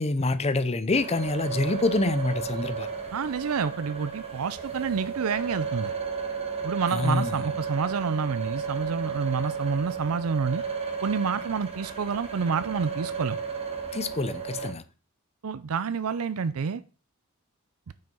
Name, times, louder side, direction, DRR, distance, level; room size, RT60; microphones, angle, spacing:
voice 1, 0.0-2.9 6.9-7.3 13.9-14.8, left 2 dB, 30° left, 0.7 m, -26 dB
sound 1, 0.9-14.7, right 6 dB, 30° right, 1.7 m, -33 dB
voice 2, 3.1-5.9 6.6-10.6 11.0-13.4 15.4-16.8, right 5 dB, 85° right, 0.5 m, -28 dB
9.1 x 5.6 x 5.4 m
head